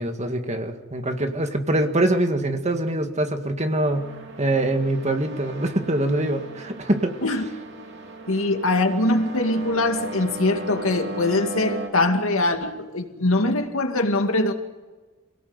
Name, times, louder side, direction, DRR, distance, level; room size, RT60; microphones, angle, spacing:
voice 1, 0.0-4.1 4.4-7.1, right 1 dB, 35° right, 6 dB, 2.0 m, -24 dB
sound 1, 3.9-11.9, right 2 dB, 55° right, 2.9 m, -37 dB
voice 2, 8.3-14.5, left 2 dB, 75° left, 5 dB, 2.2 m, -22 dB
25.0 x 18.0 x 8.1 m, 1.3 s
head